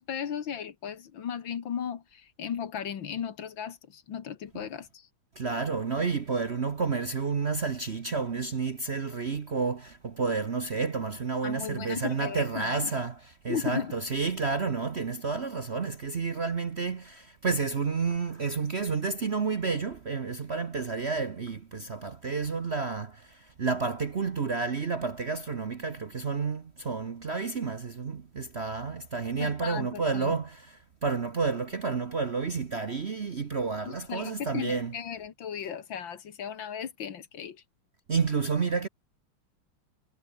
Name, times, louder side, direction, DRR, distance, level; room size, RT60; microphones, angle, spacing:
voice 1, 0.0-5.1 11.4-12.9 13.5-13.9 29.4-30.3 33.9-37.6, left 8 dB, 65° left, 2.2 m, -36 dB
voice 2, 5.4-35.0 38.1-38.9, right 4 dB, 40° right, 1.0 m, -30 dB
omnidirectional pair, 2.3 m